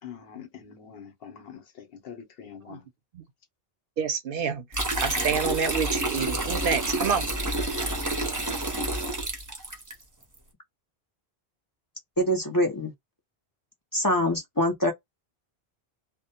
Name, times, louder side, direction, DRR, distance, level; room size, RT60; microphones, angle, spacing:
voice 1, 0.0-2.9, left 8 dB, 70° left, 0.9 m, -44 dB
voice 2, 4.0-7.3, right 6 dB, 65° right, 0.7 m, -28 dB
sound 1, 4.7-9.9, right 1 dB, 25° right, 0.5 m, -29 dB
voice 3, 12.2-12.9 13.9-14.9, equal, 30° left, 0.4 m, -24 dB
2.1 x 2.1 x 2.7 m
omnidirectional pair, 1.0 m